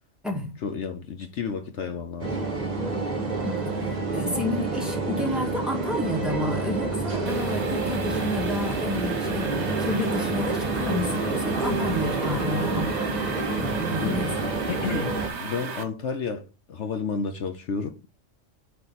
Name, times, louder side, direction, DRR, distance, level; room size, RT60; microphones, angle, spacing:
voice 1, 0.6-2.4 14.0-14.3 14.7-18.2, left 5 dB, 65° left, 1.1 m, -31 dB
sound 1, 2.2-15.3, right 3 dB, 35° right, 1.6 m, -28 dB
voice 2, 4.1-9.5 9.8-14.3, left 1 dB, ahead, 2.0 m, -30 dB
sound 2, 7.3-15.8, right 4 dB, 60° right, 1.5 m, -35 dB
9.1 x 3.4 x 4.1 m
omnidirectional pair, 1.3 m